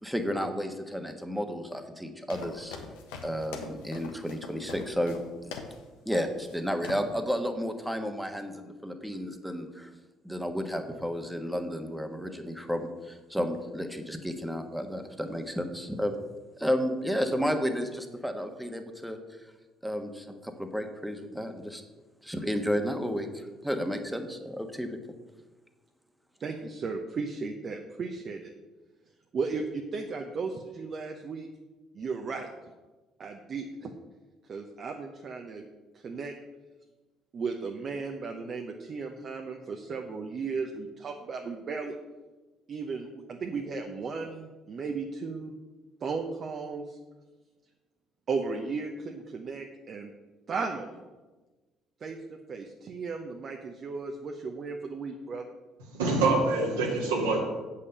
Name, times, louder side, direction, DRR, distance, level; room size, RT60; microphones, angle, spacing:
voice 1, 0.0-2.8 3.2-5.2 5.4-5.6 6.0-9.9 10.2-16.1 16.6-19.2 19.8-21.8 22.2-25.0, equal, 5° right, 6 dB, 1.3 m, -32 dB
sound 1, 2.3-5.8 6.1-6.6 6.8-7.1, left 5 dB, 80° left, 1.1 m, -43 dB
voice 2, 26.4-28.5 29.3-31.5 31.9-32.5 33.2-33.9 34.5-35.6 35.9-36.3 37.3-41.9 42.7-45.6 46.0-47.0 48.3-50.1 50.5-51.0 52.0-55.5, right 4 dB, 50° right, 3 dB, 0.9 m, -35 dB
voice 3, 55.9-57.4, right 3 dB, 85° right, -1 dB, 2.1 m, -25 dB
8.1 x 5.7 x 6.8 m, 1.2 s
hypercardioid pair, 55°, 0 cm